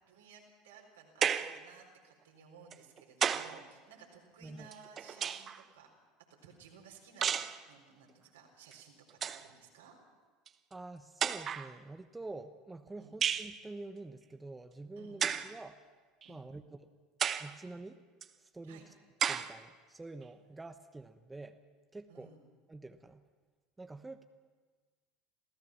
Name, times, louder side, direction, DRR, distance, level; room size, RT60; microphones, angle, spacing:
voice 1, 0.0-5.9 6.4-9.9 13.0-13.2 15.0-15.4 16.2-16.5 18.6-18.9 22.1-22.4, right 6 dB, 75° right, 1 dB, 4.1 m, -57 dB
sound 1, 1.2-1.6 2.7-3.6 4.7-5.6 7.2-7.6 8.7-8.8 9.1-9.5 10.5-10.6 11.2-11.7 13.2-13.5 15.2-15.5 16.2-16.3 17.2-17.5 18.2-18.3 19.2-19.5, right 8 dB, 35° right, 0.9 m, -33 dB
voice 2, 10.7-15.8 16.3-16.9 17.4-18.0 18.4-18.9 19.3-21.6 21.9-22.3 22.7-23.2 23.8-24.2, right 2 dB, 15° right, 8 dB, 1.0 m, -47 dB
27.0 x 16.5 x 6.0 m, 1.4 s
hypercardioid pair, 75°, 0 cm